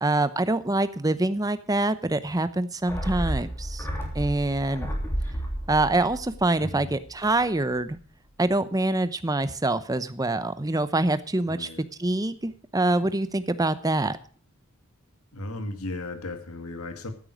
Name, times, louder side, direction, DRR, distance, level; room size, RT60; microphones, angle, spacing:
voice 1, 0.0-3.9 4.1-4.9 5.7-8.0 8.4-11.7 12.0-14.2, right 2 dB, 15° right, 13 dB, 0.8 m, -25 dB
sound 1, 2.9-7.5 7.7-7.8, equal, 10° left, 3.3 m, -32 dB
voice 2, 6.6-6.9 11.5-11.8 15.3-17.1, left 2 dB, 75° left, 7 dB, 2.0 m, -36 dB
14.5 x 9.2 x 6.1 m, 0.42 s
head